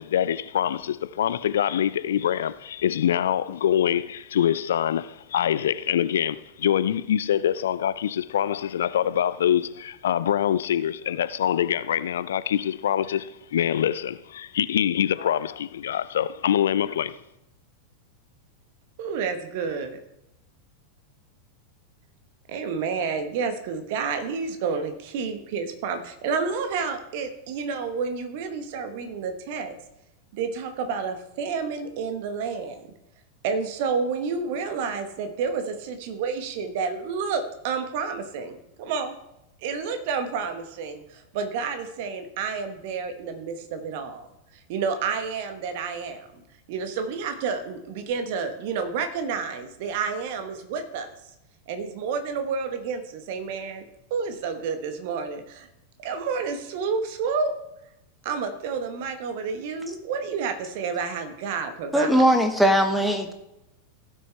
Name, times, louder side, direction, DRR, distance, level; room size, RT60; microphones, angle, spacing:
voice 1, 0.0-17.2, left 10 dB, 60° left, 0.3 m, -25 dB
voice 2, 19.0-19.9 22.5-29.7 30.3-32.9 33.4-39.1 39.6-44.3 44.7-46.3 46.7-51.1 51.7-55.7 56.0-57.5 58.2-62.2, right 5 dB, 50° right, 1.2 m, -30 dB
voice 3, 61.9-63.3, equal, 5° right, 1.3 m, -20 dB
16.5 x 6.4 x 3.3 m
figure-of-eight pair, 90°, 0 cm